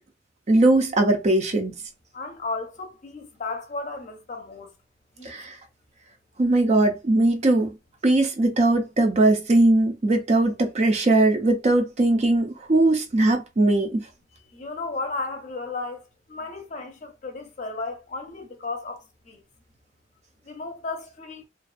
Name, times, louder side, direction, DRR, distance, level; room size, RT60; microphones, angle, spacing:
voice 1, 0.5-1.8 5.2-5.5 6.4-7.7 8.0-14.0, right 2 dB, 35° right, 0.4 m, -20 dB
voice 2, 2.1-4.7 5.2-5.3 14.5-19.4 20.5-21.5, left 3 dB, 40° left, 0.6 m, -34 dB
2.4 x 2.3 x 2.4 m
head